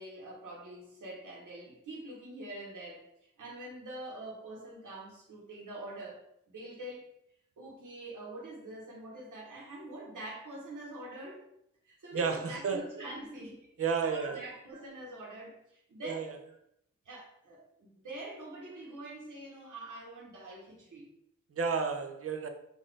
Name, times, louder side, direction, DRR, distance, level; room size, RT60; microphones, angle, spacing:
voice 1, 0.0-7.1 7.6-11.4 11.8-16.5 17.0-21.1, right 1 dB, 75° right, 1.1 m, -45 dB
voice 2, 12.1-12.8 13.8-14.4 16.0-16.2 21.5-22.5, right 5 dB, 45° right, 0.5 m, -31 dB
4.0 x 2.6 x 3.2 m
wide cardioid pair, 120°, 31 cm